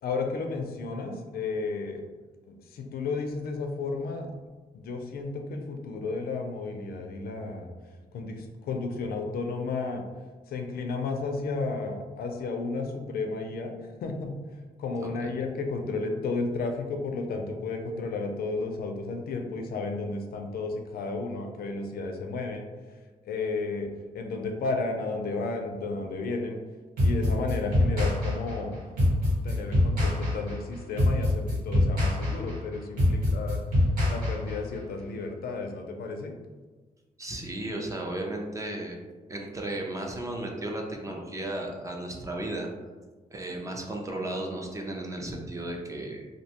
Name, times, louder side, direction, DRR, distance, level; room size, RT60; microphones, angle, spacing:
voice 1, 0.0-2.0 2.5-4.3 4.7-7.7 8.1-10.0 10.5-13.7 14.0-14.3 14.8-23.0 23.2-26.6 27.0-28.8 29.4-33.6 34.1-36.3, left 3 dB, 85° left, 4 dB, 0.4 m, -33 dB
sound 1, 27.0-34.8, left 1 dB, 80° right, 1.3 m, -24 dB
voice 2, 37.2-39.0 39.3-42.7 43.3-46.3, right 1 dB, 20° right, 1 dB, 0.3 m, -34 dB
2.6 x 2.1 x 2.8 m, 1.3 s
wide cardioid pair, 140°, 15 cm